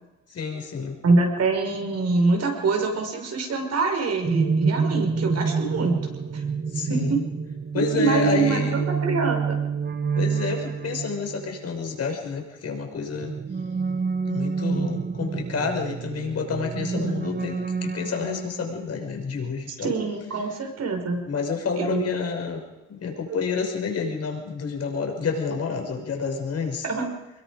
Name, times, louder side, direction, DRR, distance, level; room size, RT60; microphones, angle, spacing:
voice 1, 0.3-1.0 6.7-7.1 7.7-8.8 10.2-13.3 14.3-19.9 21.2-22.6 22.9-26.8, left 5 dB, 55° left, 2 dB, 6.1 m, -29 dB
voice 2, 1.0-6.0 6.3-6.4 6.9-7.2 7.7-9.6 16.9-17.1 19.8-21.2 21.8-22.0 26.8-27.1, right 3 dB, 55° right, 3 dB, 5.8 m, -24 dB
sound 1, 4.2-11.7 12.9-18.9, right 5 dB, 35° right, 1.2 m, -28 dB
24.5 x 21.5 x 5.2 m, 1.1 s
cardioid pair, 90°, 30 cm